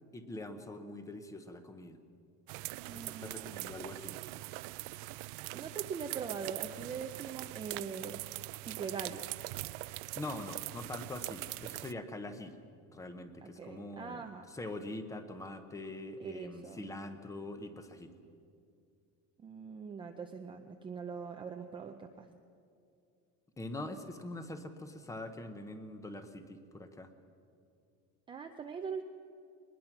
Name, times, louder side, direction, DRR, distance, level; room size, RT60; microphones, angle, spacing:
voice 1, 0.1-2.0 2.9-4.1 10.2-12.5 12.9-14.2 14.5-18.1 23.6-27.1, left 2 dB, 10° left, 8 dB, 0.8 m, -43 dB
sound 1, 2.5-11.9, right 21 dB, 75° right, 0.5 m, -42 dB
voice 2, 2.9-3.6 5.5-8.2 8.7-9.3 13.4-14.5 16.2-16.8 19.4-22.3 28.3-29.0, right 6 dB, 15° right, 4 dB, 0.5 m, -42 dB
22.5 x 20.5 x 6.0 m, 2.5 s
cardioid pair, 175°, 34 cm